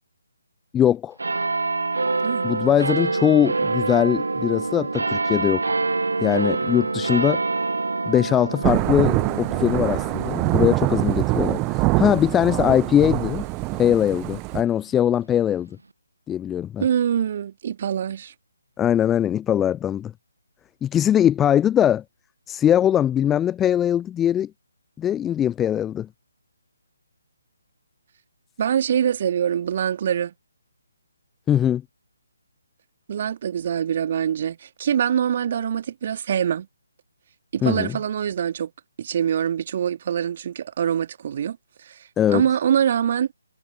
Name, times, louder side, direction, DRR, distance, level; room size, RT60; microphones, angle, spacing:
voice 1, 0.7-1.2 2.4-5.6 6.2-7.4 8.1-13.4 13.7-15.7 16.3-16.8 18.8-20.1 20.8-22.0 22.5-24.5 25.0-26.1 31.5-31.8 37.6-38.0 42.2-42.4, left 10 dB, 10° left, 0.3 m, -21 dB
sound 1, 1.2-14.1 14.7-14.8, right 3 dB, 65° right, 1.4 m, -27 dB
Thunder / Rain, 8.6-14.6, right 25 dB, 15° right, 0.9 m, -24 dB
voice 2, 16.8-18.3 28.6-30.3 33.1-36.7 37.5-38.7 39.0-41.6 41.8-43.3, right 9 dB, 35° right, 2.2 m, -24 dB
figure-of-eight pair, 145°, 0 cm